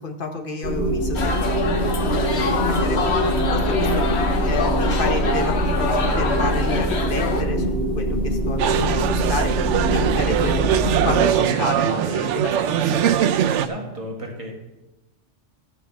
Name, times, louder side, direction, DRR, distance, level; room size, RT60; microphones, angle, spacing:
voice 1, 0.0-1.3 2.0-4.1 4.4-9.5 9.9-13.2, left 3 dB, 50° left, 4 dB, 1.4 m, -30 dB
sound 1, 0.6-11.2, right 1 dB, 5° left, 2.7 m, -23 dB
sound 2, 1.1-7.4, left 4 dB, 65° left, 1.4 m, -25 dB
sound 3, 8.6-13.7, right 10 dB, 85° right, 0.9 m, -21 dB
voice 2, 13.5-14.5, equal, 30° right, 0 dB, 2.0 m, -33 dB
13.5 x 4.6 x 7.5 m, 1.0 s
omnidirectional pair, 1.2 m